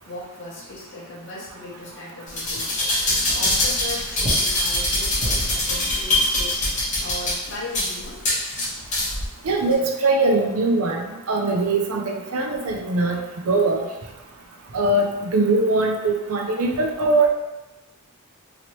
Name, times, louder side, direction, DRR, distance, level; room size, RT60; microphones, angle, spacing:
voice 1, 0.1-2.7 3.3-6.6 7.0-8.2 10.0-10.1, left 2 dB, 55° left, -5 dB, 1.0 m, -37 dB
sound 1, 2.3-9.3 9.7-9.8, left 1 dB, 35° left, 1.0 m, -23 dB
voice 2, 9.4-13.2 13.5-13.8 14.7-17.3, right 2 dB, 80° right, 1 dB, 0.5 m, -21 dB
2.9 x 2.8 x 3.0 m, 1.0 s
head